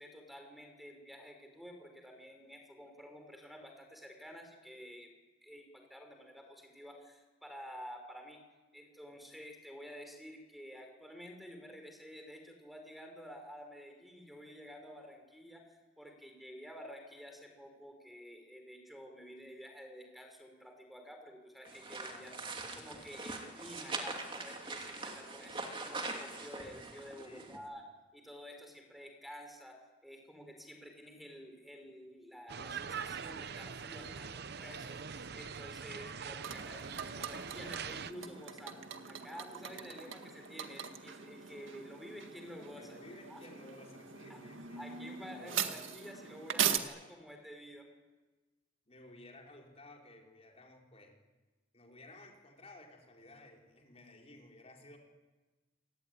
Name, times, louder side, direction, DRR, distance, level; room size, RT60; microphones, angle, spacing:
voice 1, 0.0-5.1 5.4-8.4 8.7-22.3 22.7-27.8 28.1-43.0 43.3-43.4 44.3-44.5 44.8-47.9, equal, ahead, 4 dB, 4.8 m, -51 dB
sound 1, 21.6-27.6, right 3 dB, 25° right, 3.0 m, -42 dB
voice 2, 22.1-22.5 27.2-27.6 42.8-44.8 45.4-45.8 48.9-51.1 51.7-55.0, left 1 dB, 30° left, 0 dB, 4.9 m, -55 dB
sound 2, 32.5-38.1, right 6 dB, 55° right, 0.8 m, -43 dB
sound 3, 36.4-46.8, right 8 dB, 85° right, 1.9 m, -40 dB
27.0 x 18.5 x 9.7 m, 1.2 s
head